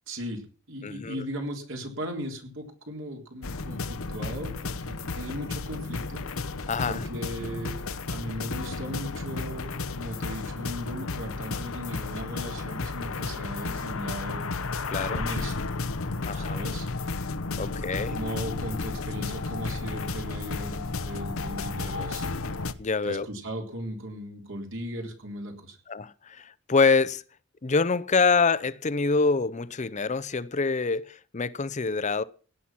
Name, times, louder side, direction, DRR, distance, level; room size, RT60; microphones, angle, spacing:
voice 1, 0.1-6.2 6.9-7.8 8.1-14.5 15.1-15.8 16.3-16.9 17.6-22.3 23.0-25.8, equal, 60° right, 3.6 m, -37 dB
voice 2, 0.8-1.2 6.7-7.0 14.9-15.2 16.2-16.7 17.6-18.1 22.8-23.3 25.9-27.2 27.6-32.2, left 4 dB, 35° left, 0.6 m, -26 dB
sound 1, 3.4-22.7, left 3 dB, 75° left, 0.9 m, -33 dB
17.0 x 10.0 x 5.9 m
head